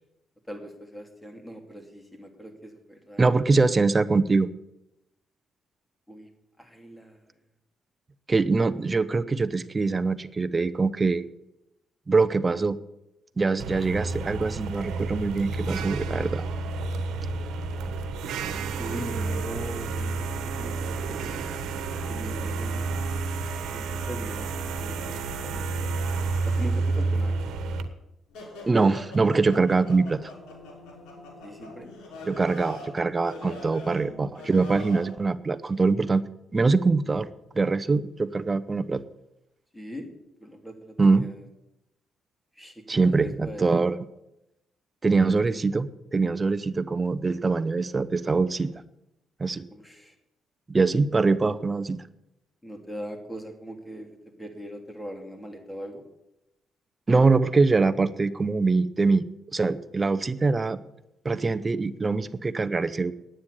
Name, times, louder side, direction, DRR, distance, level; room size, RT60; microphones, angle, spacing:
voice 1, 0.5-3.2 6.1-6.3 6.6-7.2 18.8-20.2 20.4-21.8 22.1-22.9 23.6-25.9 26.4-27.5 31.4-31.9 39.7-40.1 40.4-41.4 42.6-43.8 49.7-50.1 52.6-56.0, equal, 10° left, 4 dB, 3.0 m, -41 dB
voice 2, 3.2-4.5 8.3-11.2 12.1-12.8 13.4-16.4 28.7-30.3 32.3-36.2 36.5-37.3 37.5-39.0 41.0-41.2 42.9-44.0 45.0-48.7 49.4-49.6 50.7-52.0 57.1-59.2 59.5-60.8 61.2-63.1, right 3 dB, 25° right, 14 dB, 0.8 m, -23 dB
sound 1, 13.6-27.8, right 3 dB, 80° right, 1.3 m, -30 dB
sound 2, 28.3-35.1, left 1 dB, 85° left, 5.6 m, -43 dB
9.6 x 8.9 x 10.0 m, 0.89 s
cardioid pair, 90°, 0 cm